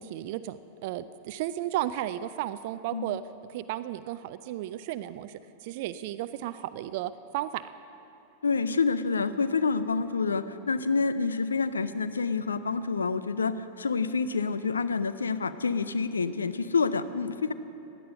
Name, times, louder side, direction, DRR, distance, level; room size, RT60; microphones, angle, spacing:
voice 1, 0.0-3.2 3.5-7.6, right 13 dB, 50° right, 14 dB, 0.4 m, -34 dB
voice 2, 8.4-17.5, left 4 dB, 75° left, 13 dB, 0.5 m, -28 dB
16.0 x 10.5 x 6.6 m, 2.8 s
figure-of-eight pair, 90°, 0 cm